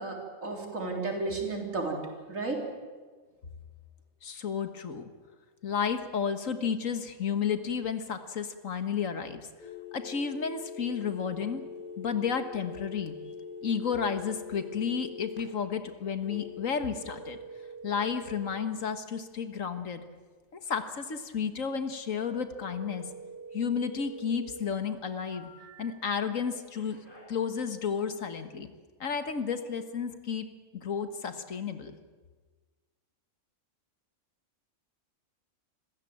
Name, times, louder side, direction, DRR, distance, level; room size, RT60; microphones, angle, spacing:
voice 1, 0.0-2.0 2.3-2.6, right 3 dB, 75° right, 1 dB, 4.3 m, -33 dB
voice 2, 4.2-5.0 5.6-9.4 9.9-11.6 12.0-13.1 13.6-17.4 17.8-20.0 20.7-23.0 23.5-25.5 25.8-27.0 27.3-28.7 29.0-30.5 30.7-32.0, left 6 dB, 80° left, 9 dB, 1.9 m, -32 dB
sound 1, 9.6-15.4 16.2-18.6 22.6-24.6 25.0-25.9 26.7-27.2, left 2 dB, 40° left, 8.3 m, -44 dB
26.5 x 15.0 x 8.9 m, 1.4 s
omnidirectional pair, 1.4 m